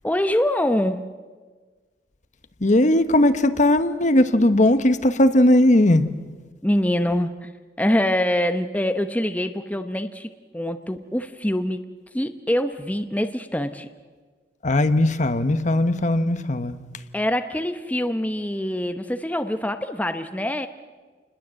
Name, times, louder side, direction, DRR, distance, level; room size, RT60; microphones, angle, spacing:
voice 1, 0.0-1.1 6.6-7.5 7.8-11.9 12.1-13.9 17.1-20.7, left 1 dB, 10° left, 0.8 m, -24 dB
voice 2, 2.6-6.1 14.6-16.8, left 1 dB, 45° left, 1.1 m, -18 dB
28.5 x 20.5 x 7.7 m
head